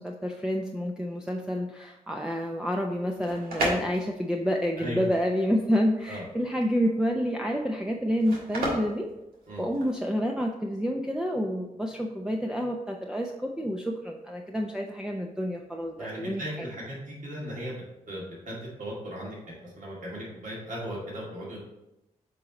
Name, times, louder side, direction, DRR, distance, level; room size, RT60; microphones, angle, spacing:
voice 1, 0.0-9.1 9.6-16.4, equal, 5° right, 1 dB, 0.6 m, -29 dB
sound 1, 3.0-10.0, right 1 dB, 80° right, 1.5 m, -35 dB
voice 2, 4.8-5.1 6.1-6.2 9.5-9.7 16.0-21.6, equal, 60° right, -5 dB, 2.1 m, -37 dB
7.4 x 3.1 x 4.0 m, 0.92 s
supercardioid pair, 45°, 15 cm